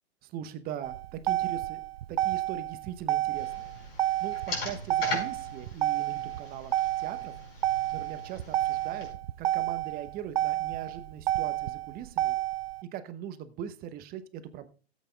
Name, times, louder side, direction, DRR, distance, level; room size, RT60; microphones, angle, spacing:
voice 1, 0.2-1.8 2.1-3.7 4.2-7.3 7.9-9.1 9.4-12.4 12.8-14.7, right 10 dB, 30° right, 12 dB, 0.9 m, -40 dB
Motor vehicle (road), 0.8-12.8, right 14 dB, 70° right, 0.4 m, -30 dB
sound 1, 3.3-9.1, left 3 dB, 65° left, 5.0 m, -40 dB
16.5 x 8.3 x 2.3 m, 0.35 s
figure-of-eight pair, 105°, 32 cm